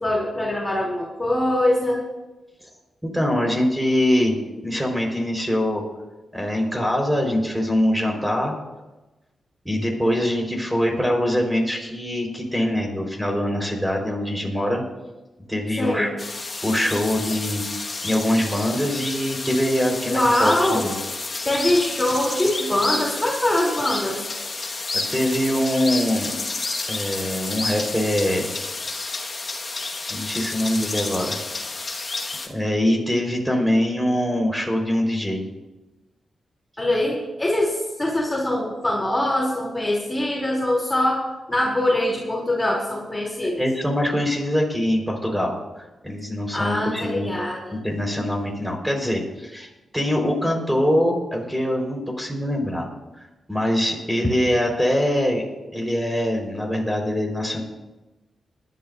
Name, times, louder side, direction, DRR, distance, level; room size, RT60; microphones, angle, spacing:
voice 1, 0.0-2.0 15.8-16.1 20.1-20.9 21.4-24.2 36.8-43.6 46.5-47.8, left 1 dB, 20° left, -3 dB, 3.4 m, -23 dB
voice 2, 3.0-4.4 4.6-5.8 6.3-8.5 9.6-14.8 15.5-16.1 16.6-17.6 18.0-20.9 24.9-26.3 26.9-28.5 30.1-31.4 32.4-35.4 43.5-47.3 47.7-49.7 49.9-55.4 55.7-57.6, equal, 5° right, 1 dB, 4.7 m, -23 dB
sound 1, 16.2-32.5, left 3 dB, 45° left, 1.8 m, -30 dB
20.5 x 12.0 x 2.7 m, 1.1 s
cardioid pair, 55°, 0 cm